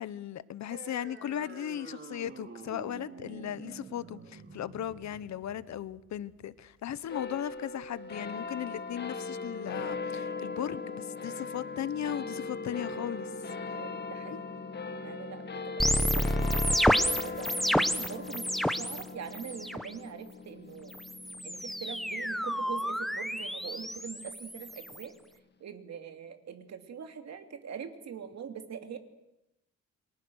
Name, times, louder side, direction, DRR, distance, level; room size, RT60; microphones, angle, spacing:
voice 1, 0.0-13.3, left 10 dB, 65° left, 1.0 m, -37 dB
sound 1, 0.7-7.7, right 4 dB, 40° right, 3.4 m, -48 dB
sound 2, 7.1-23.8, left 4 dB, 35° left, 1.8 m, -39 dB
voice 2, 13.7-14.5 15.0-16.9 17.2-20.9 21.4-25.1 25.6-29.0, right 7 dB, 60° right, 2.9 m, -43 dB
sound 3, 15.8-19.0 19.3-19.9 20.9-25.0, equal, ahead, 1.1 m, -30 dB
30.0 x 23.5 x 6.4 m
cardioid pair, 120°, 30 cm